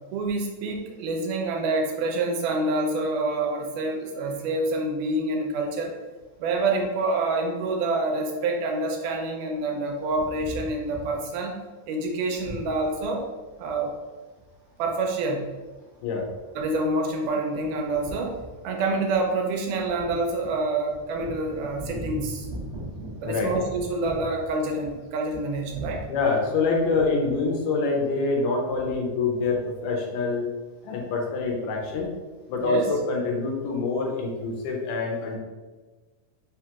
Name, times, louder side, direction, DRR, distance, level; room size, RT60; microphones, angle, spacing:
voice 1, 0.1-5.9 6.4-11.6 11.9-13.3 13.6-13.9 14.8-15.5 16.6-18.4 18.6-22.5 23.2-26.1 32.6-32.8, right 2 dB, 85° right, 1 dB, 2.1 m, -27 dB
sound 1, 10.1-11.4 12.3-14.0 14.6-14.9 15.3-25.0 25.3-26.1 26.7-27.4, right 1 dB, 40° right, 1.0 m, -40 dB
voice 2, 26.1-30.4 30.8-32.1 32.5-35.4, left 3 dB, 90° left, 0 dB, 2.2 m, -25 dB
5.1 x 2.8 x 2.3 m, 1.3 s
omnidirectional pair, 3.6 m